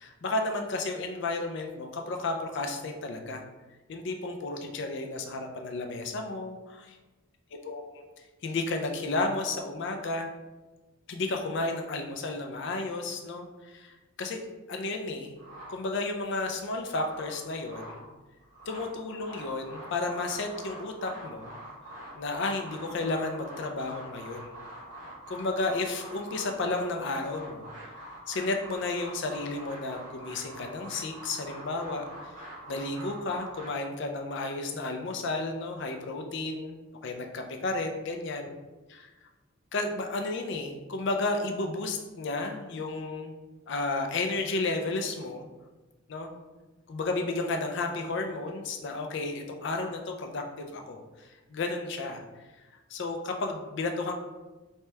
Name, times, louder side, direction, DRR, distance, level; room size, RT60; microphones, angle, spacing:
voice 1, 0.0-3.4 3.9-7.0 7.7-8.0 8.4-10.3 11.1-15.3 15.7-18.0 18.7-21.6 22.1-24.6 25.3-38.5 39.7-43.3 43.7-45.5 46.1-46.3 46.9-52.2 52.9-54.1, left 2 dB, 55° left, 4 dB, 0.4 m, -32 dB
sound 1, 15.4-16.2 16.7-18.1 18.4-33.7, right 1 dB, 40° right, 1.4 m, -45 dB
3.2 x 2.9 x 3.3 m, 1.2 s
head